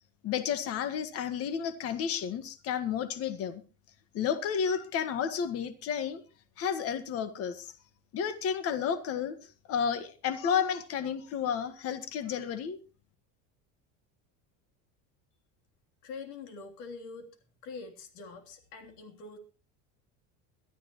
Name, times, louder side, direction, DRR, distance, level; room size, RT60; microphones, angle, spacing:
voice 1, 0.2-3.6 4.1-6.2 6.6-7.7 8.1-9.4 9.7-12.8, left 7 dB, 40° left, 11 dB, 1.6 m, -31 dB
voice 2, 16.0-17.3 17.6-19.4, left 4 dB, 75° left, 5 dB, 3.3 m, -44 dB
22.0 x 12.5 x 3.1 m, 0.33 s
cardioid pair, 155°, 35 cm